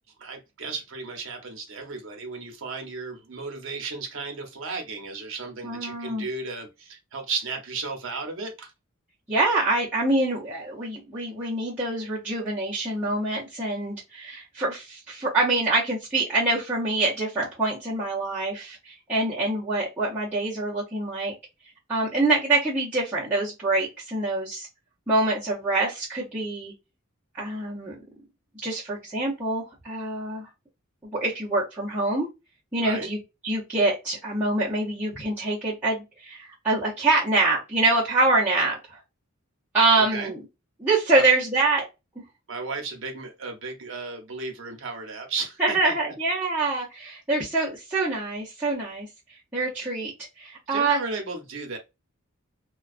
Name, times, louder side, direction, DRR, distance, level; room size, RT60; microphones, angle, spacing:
voice 1, 0.2-8.7 32.8-33.1 39.9-40.3 41.1-41.3 42.5-46.1 50.7-51.8, right 4 dB, 65° right, 0.7 m, -34 dB
voice 2, 5.6-6.3 9.3-21.3 21.9-24.7 25.1-26.7 27.3-27.9 28.6-30.5 31.1-32.3 32.7-39.0 39.7-40.4 40.8-41.8 45.6-49.1 49.5-50.1 50.4-51.0, right 2 dB, 10° right, 0.7 m, -25 dB
2.3 x 2.3 x 2.3 m
head